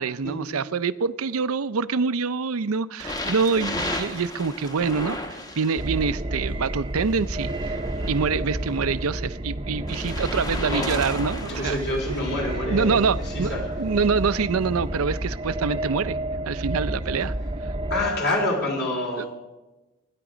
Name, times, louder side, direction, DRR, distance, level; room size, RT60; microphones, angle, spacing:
voice 1, 0.0-7.8 8.1-11.8 12.2-12.3 12.7-16.2 16.5-17.3 19.2-19.3, right 5 dB, 85° right, 15 dB, 0.6 m, -25 dB
sound 1, 3.0-6.1 7.0-8.9 9.9-12.5 13.2-13.5 14.3-14.4, left 1 dB, 15° left, 1.1 m, -34 dB
sound 2, 5.8-18.1, right 1 dB, 25° right, 0.7 m, -30 dB
voice 2, 11.4-12.9 13.2-13.7 17.9-19.3, left 1 dB, 50° left, 0 dB, 3.7 m, -27 dB
23.5 x 10.5 x 5.0 m, 1.1 s
head